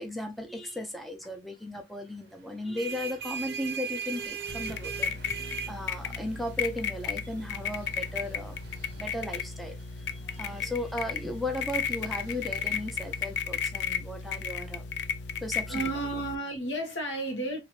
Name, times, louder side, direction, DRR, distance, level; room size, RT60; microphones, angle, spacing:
voice 1, 0.0-8.6 9.0-14.8 15.4-15.9, left 1 dB, ahead, 0.5 m, -36 dB
sound 1, 2.5-13.8, right 7 dB, 60° right, 0.5 m, -42 dB
sound 2, 4.5-16.4, left 6 dB, 65° left, 0.4 m, -34 dB
voice 2, 15.7-17.6, right 2 dB, 90° left, 1.4 m, -32 dB
3.0 x 2.9 x 3.0 m
head